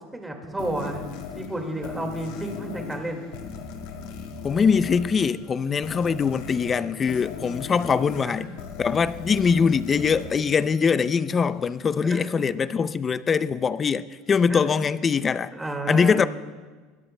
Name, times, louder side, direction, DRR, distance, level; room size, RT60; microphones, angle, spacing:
voice 1, 0.1-1.1 1.4-3.3 8.2-8.4 12.0-12.6 14.5-14.8 15.5-16.3, right 1 dB, 10° right, 2.0 m, -32 dB
sound 1, 0.6-11.4, left 6 dB, 75° left, 1.8 m, -39 dB
voice 2, 4.4-8.5 8.8-15.5 15.9-16.3, left 6 dB, 25° left, 0.4 m, -22 dB
21.0 x 17.0 x 2.2 m
supercardioid pair, 140°, 0 cm